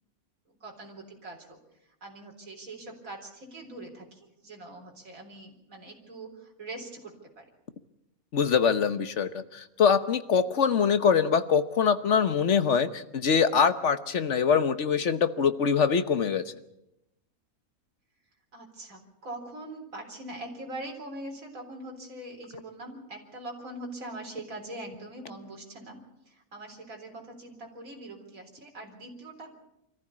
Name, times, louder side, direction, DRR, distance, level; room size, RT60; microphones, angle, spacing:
voice 1, 0.5-1.6 2.0-7.4 18.5-26.0 26.3-29.5, right 1 dB, 60° right, 1 dB, 4.3 m, -42 dB
voice 2, 8.3-16.4, left 6 dB, 55° left, 11 dB, 1.2 m, -24 dB
25.0 x 14.5 x 8.6 m, 0.85 s
omnidirectional pair, 1.6 m